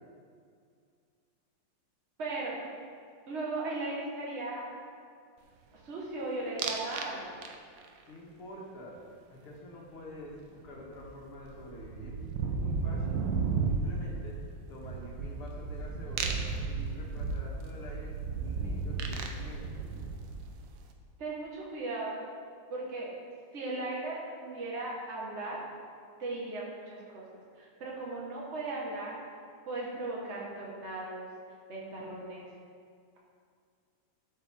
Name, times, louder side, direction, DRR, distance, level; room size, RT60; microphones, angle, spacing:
voice 1, 2.2-2.6 3.3-4.7 5.8-7.3 21.2-22.2 22.7-23.1 23.5-25.6 26.2-27.2 27.6-29.1 29.7-31.3 31.7-32.5, right 2 dB, 35° right, -4 dB, 1.8 m, -37 dB
sound 1, 6.6-7.1 7.4-7.9 10.3-10.4 10.7-20.7, right 4 dB, 70° right, 1.3 m, -34 dB
voice 2, 8.0-12.2 12.5-13.3 13.7-14.4 14.7-18.1 18.4-19.7, left 1 dB, 90° left, -3 dB, 2.6 m, -47 dB
11.5 x 6.5 x 3.7 m, 2.2 s
omnidirectional pair, 2.3 m